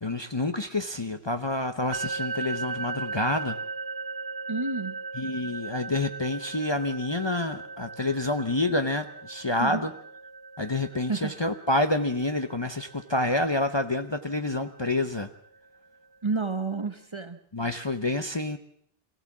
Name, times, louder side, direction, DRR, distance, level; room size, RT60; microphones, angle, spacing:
voice 1, 0.0-3.6 5.1-9.9 10.6-15.3 17.5-18.6, left 2 dB, 30° left, 7 dB, 0.8 m, -28 dB
sound 1, 1.9-15.8, right 4 dB, 85° right, 1.5 m, -38 dB
voice 2, 4.5-5.0 9.6-9.9 11.1-11.3 16.2-17.4, right 3 dB, 30° right, 9 dB, 1.0 m, -30 dB
23.5 x 16.0 x 7.3 m, 0.67 s
omnidirectional pair, 1.1 m